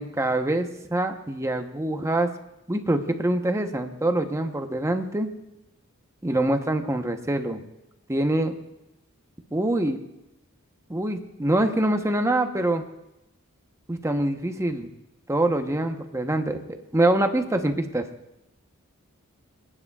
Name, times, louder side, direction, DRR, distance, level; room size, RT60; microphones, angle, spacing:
voice 1, 0.0-2.3 2.7-5.3 6.2-7.6 8.1-8.5 9.5-10.0 10.9-12.8 13.9-14.9 15.3-18.0, right 1 dB, 15° right, 6 dB, 0.9 m, -25 dB
27.0 x 9.8 x 2.4 m, 0.90 s
head